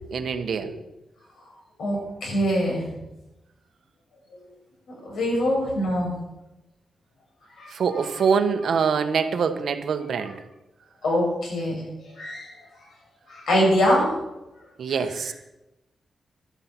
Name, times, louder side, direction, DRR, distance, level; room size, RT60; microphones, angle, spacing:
voice 1, 0.1-0.7 7.7-10.4 14.8-15.3, right 6 dB, 65° right, 8 dB, 1.3 m, -24 dB
voice 2, 1.8-2.8 5.1-6.1 7.6-7.7 11.0-11.8 12.2-12.5 13.3-14.1, equal, 90° left, -2 dB, 7.2 m, -23 dB
13.0 x 12.5 x 6.0 m, 0.96 s
wide cardioid pair, 170°, 0 cm